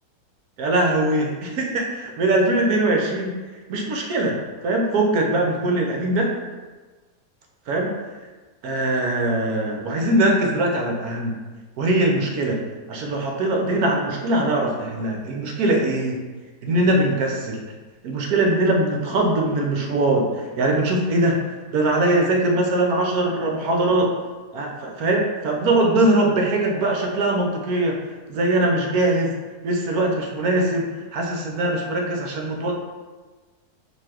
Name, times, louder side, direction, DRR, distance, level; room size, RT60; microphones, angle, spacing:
voice 1, 0.6-3.4 3.7-4.4 4.6-6.3 7.7-7.9 8.6-11.3 11.8-12.6 12.9-16.2 16.6-17.6 18.0-21.4 21.7-24.1 24.5-27.9 28.3-29.3 29.6-32.8, right 1 dB, 65° right, 1 dB, 1.1 m, -21 dB
4.3 x 2.6 x 4.3 m, 1.3 s
omnidirectional pair, 1.8 m